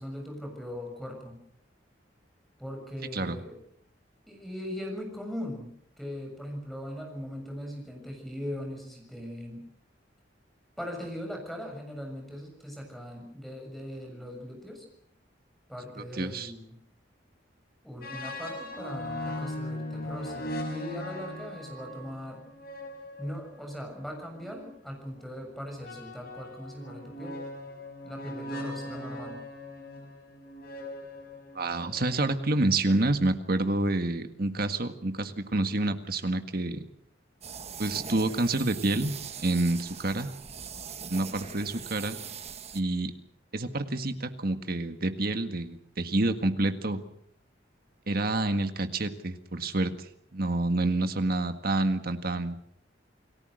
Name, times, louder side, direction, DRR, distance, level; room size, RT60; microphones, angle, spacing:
voice 1, 0.0-1.4 2.6-3.6 4.3-9.6 10.8-14.8 15.7-16.7 17.8-22.4 23.2-27.3 28.0-29.4, equal, ahead, 2 dB, 6.9 m, -40 dB
voice 2, 16.1-16.5 31.6-36.9 37.8-39.1 39.4-40.3 41.1-42.2 42.7-43.1 43.5-47.0 48.1-52.6, right 2 dB, 50° right, 8 dB, 1.8 m, -28 dB
sound 1, 18.0-24.7 25.8-33.2, left 1 dB, 50° left, 6.3 m, -40 dB
sound 2, 37.4-42.8, right 7 dB, 35° right, 1.4 m, -41 dB
29.0 x 19.0 x 6.5 m, 0.69 s
head